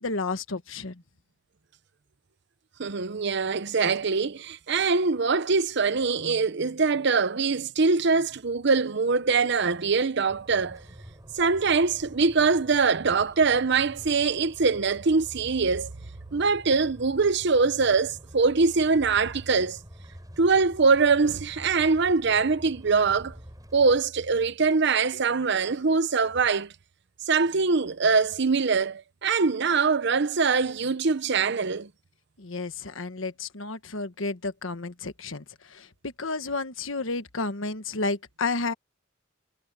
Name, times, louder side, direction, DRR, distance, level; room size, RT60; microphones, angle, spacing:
voice 1, 0.0-1.0 32.4-35.4 35.7-38.7, left 3 dB, 80° left, 1.4 m, -31 dB
voice 2, 2.8-10.8 11.4-15.9 16.3-19.8 20.4-23.3 23.7-26.7 27.3-31.9, right 4 dB, 60° right, 0.8 m, -23 dB
sound 1, 10.3-24.0, equal, 20° right, 6.1 m, -48 dB
head